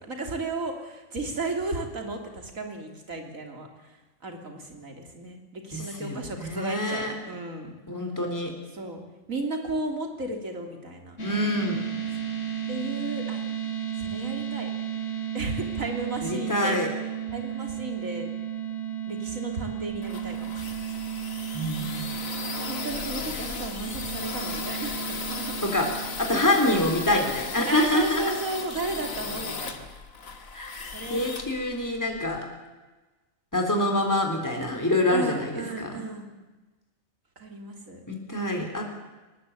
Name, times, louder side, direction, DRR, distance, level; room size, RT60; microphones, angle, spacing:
voice 1, 0.0-3.9 4.2-7.7 8.7-9.0 9.3-11.2 12.7-13.4 14.0-14.7 15.3-16.8 17.3-18.3 19.1-20.8 22.7-25.6 26.6-26.8 27.7-29.9 30.9-31.2 35.1-36.3 37.4-38.0, right 2 dB, 85° right, 3 dB, 3.6 m, -34 dB
voice 2, 5.7-7.1 7.9-8.5 11.2-11.9 16.2-16.9 21.5-22.1 25.6-25.9 26.2-28.2 30.5-32.5 33.5-36.0 38.1-38.9, left 1 dB, 15° left, 2 dB, 3.7 m, -26 dB
sound 1, 11.2-26.7, right 9 dB, 65° left, 3.6 m, -34 dB
sound 2, 19.6-32.4, left 4 dB, 85° left, 2.2 m, -36 dB
21.0 x 19.0 x 8.6 m, 1.2 s
omnidirectional pair, 1.4 m